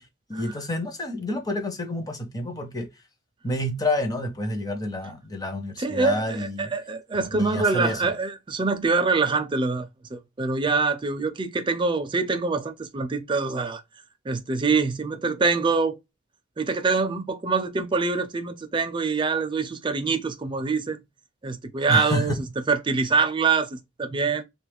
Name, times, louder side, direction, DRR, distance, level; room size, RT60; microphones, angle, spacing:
voice 1, 0.3-2.9 3.4-6.7 7.3-8.1 21.9-22.3, left 1 dB, 20° left, 0.6 m, -28 dB
voice 2, 5.8-13.8 14.3-16.0 16.6-21.0 21.4-22.4 22.7-24.4, right 4 dB, 25° right, 0.4 m, -25 dB
2.8 x 2.3 x 3.4 m
head